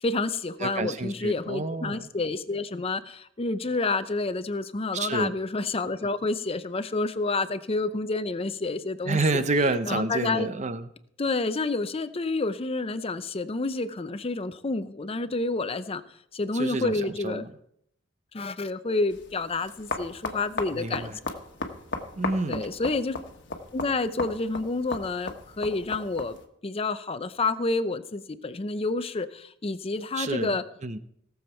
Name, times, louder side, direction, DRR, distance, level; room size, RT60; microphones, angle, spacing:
voice 1, 0.0-10.5 11.2-16.0 16.3-17.4 18.3-21.1 22.5-23.2 23.7-26.4 26.6-30.6, left 3 dB, 30° left, 12 dB, 0.6 m, -29 dB
voice 2, 0.6-2.1 4.9-5.3 9.0-10.9 16.5-17.5 20.7-21.2 22.2-22.7 30.1-31.0, right 2 dB, 35° right, 11 dB, 0.7 m, -29 dB
sound 1, 19.1-26.4, left 3 dB, 65° left, 1.3 m, -36 dB
18.0 x 7.1 x 4.4 m, 0.72 s
head